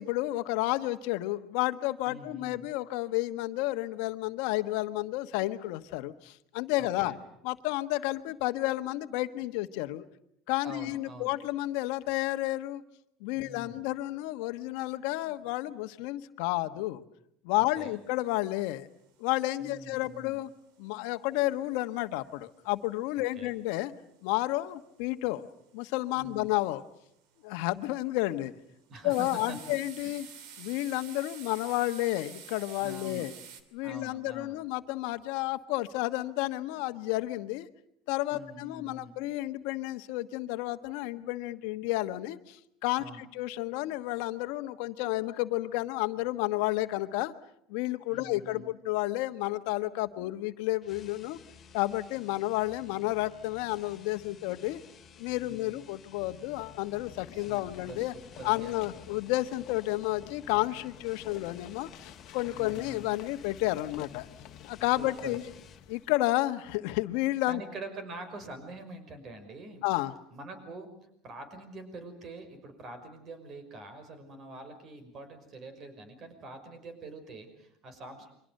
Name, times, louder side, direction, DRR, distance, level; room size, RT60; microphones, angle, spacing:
voice 1, 0.0-7.1 7.4-10.0 10.5-12.8 13.2-17.0 17.4-18.9 19.2-20.5 20.8-23.9 24.2-25.4 25.7-26.8 27.4-28.5 29.0-30.3 30.6-33.3 33.7-37.7 38.1-47.3 47.7-51.4 51.7-54.8 55.2-58.1 58.4-64.2 64.7-65.4 65.9-67.6 69.8-70.1, left 18 dB, 80° left, 10 dB, 1.4 m, -31 dB
voice 2, 2.1-2.6 6.8-7.2 10.6-11.3 13.3-13.8 17.8-18.0 19.6-20.4 23.2-23.5 26.1-26.4 28.9-29.7 32.8-33.2 33.8-34.6 38.3-39.2 43.0-43.3 48.1-48.7 55.4-55.8 57.3-58.7 62.5-63.1 65.0-65.4 67.5-69.8 70.3-70.9 71.2-78.3, right 2 dB, 40° right, 9 dB, 5.8 m, -45 dB
sound 1, 17.8-17.9 18.3-18.4 18.6-18.9 19.3-20.1 20.4-21.6 21.9-23.3 23.8-24.0 24.2-24.3 24.7-25.1 25.4-25.9 26.4-26.7 27.2-27.8 28.2-28.4 29.1-33.6, right 8 dB, 70° right, 2.9 m, -48 dB
sound 2, 50.8-65.9, left 7 dB, 30° left, 2.2 m, -54 dB
sound 3, 56.3-66.2, left 12 dB, 60° left, 1.5 m, -51 dB
29.0 x 24.5 x 6.7 m, 0.71 s
cardioid pair, 135°, 0 cm